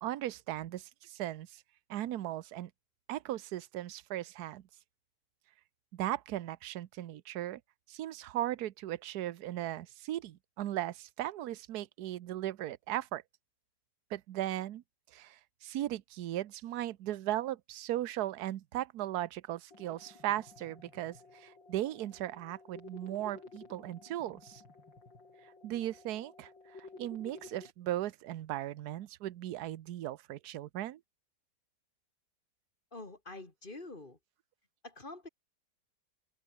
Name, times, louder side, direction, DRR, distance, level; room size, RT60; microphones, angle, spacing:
voice 1, 0.0-1.6 1.9-2.7 3.1-4.6 5.9-7.6 7.9-13.2 14.1-14.8 15.1-24.6 25.6-26.5 27.0-31.0, right 13 dB, 65° right, 1.3 m, -37 dB
sound 1, 19.7-27.7, left 3 dB, 90° left, 5.5 m, -54 dB
voice 2, 32.9-34.2 34.8-35.3, left 2 dB, 25° left, 2.8 m, -46 dB
omnidirectional pair, 1.9 m